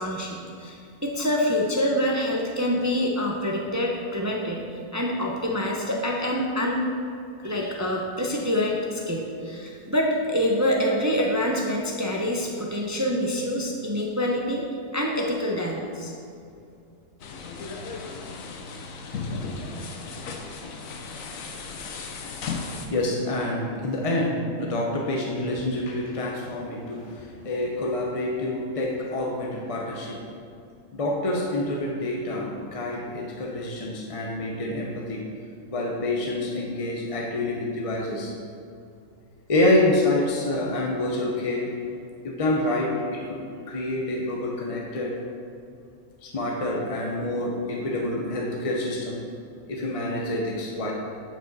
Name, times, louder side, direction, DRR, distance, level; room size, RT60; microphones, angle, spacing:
voice 1, 0.0-6.8 7.4-14.6 14.9-16.1, left 1 dB, 20° right, -1 dB, 0.4 m, -26 dB
sound 1, 17.2-22.9, left 4 dB, 85° left, 1.1 m, -35 dB
voice 2, 22.9-30.2 30.9-35.2 35.7-38.3 39.5-41.8 42.2-43.4 43.7-45.1 46.2-49.2 49.7-50.9, left 1 dB, 35° left, -1 dB, 0.6 m, -27 dB
9.0 x 5.2 x 4.0 m, 2.6 s
omnidirectional pair, 1.4 m